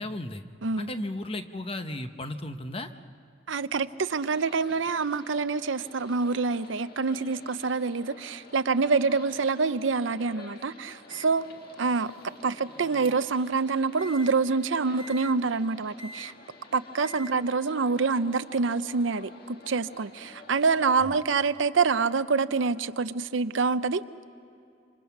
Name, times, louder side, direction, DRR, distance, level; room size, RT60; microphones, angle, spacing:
voice 1, 0.0-0.4 0.8-2.9 21.0-21.2, left 1 dB, 30° left, 0.9 m, -35 dB
voice 2, 3.5-11.4 11.8-12.1 12.4-16.3 16.7-24.0, right 4 dB, 85° right, 0.6 m, -26 dB
sound 1, 4.1-21.1, left 2 dB, 50° left, 1.7 m, -50 dB
Microwave oven, 11.1-13.4 14.0-14.3 15.0-15.3 16.0-16.3 17.0-17.3, equal, 30° right, 1.3 m, -46 dB
27.0 x 26.0 x 5.9 m
head